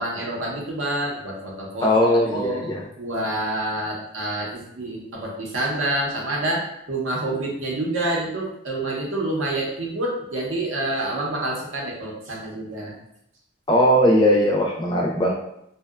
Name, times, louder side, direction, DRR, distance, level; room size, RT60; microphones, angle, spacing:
voice 1, 0.0-1.9 2.2-2.6 3.0-12.9, right 1 dB, 85° right, -2 dB, 0.6 m, -27 dB
voice 2, 1.8-2.8 13.7-15.3, equal, 20° left, -1 dB, 0.3 m, -19 dB
2.7 x 2.0 x 2.3 m, 0.76 s
head